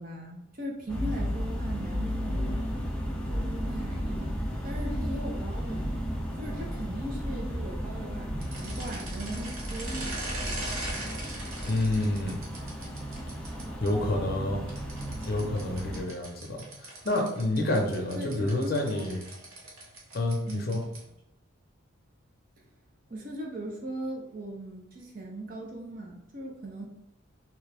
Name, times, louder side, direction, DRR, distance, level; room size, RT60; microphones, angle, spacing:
voice 1, 0.0-2.6 3.3-4.3 4.6-5.9 6.3-10.2 12.2-12.3 18.1-19.1 20.5-20.8 23.1-26.8, right 1 dB, 45° right, -1 dB, 0.7 m, -39 dB
sound 1, 0.9-16.0, equal, 5° left, 0.4 m, -34 dB
bike gear mechanism, 8.4-13.9 14.7-21.2, right 2 dB, 90° right, 0.9 m, -41 dB
voice 2, 11.6-12.4 13.8-14.6 15.3-19.2 20.1-20.8, left 1 dB, 45° left, 1 dB, 0.6 m, -28 dB
3.0 x 2.3 x 3.3 m, 0.80 s
head